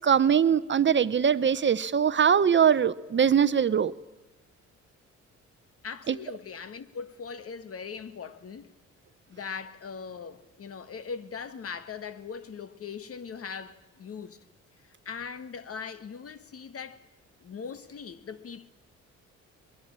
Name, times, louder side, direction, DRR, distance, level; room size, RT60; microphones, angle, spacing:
voice 1, 0.0-3.9 6.1-6.2, right 8 dB, 40° right, 0.8 m, -22 dB
voice 2, 5.8-8.8 9.3-14.4 15.1-17.0 17.4-18.7, left 6 dB, 50° left, 1.7 m, -40 dB
22.0 x 21.5 x 8.8 m
cardioid pair, 90°, 30 cm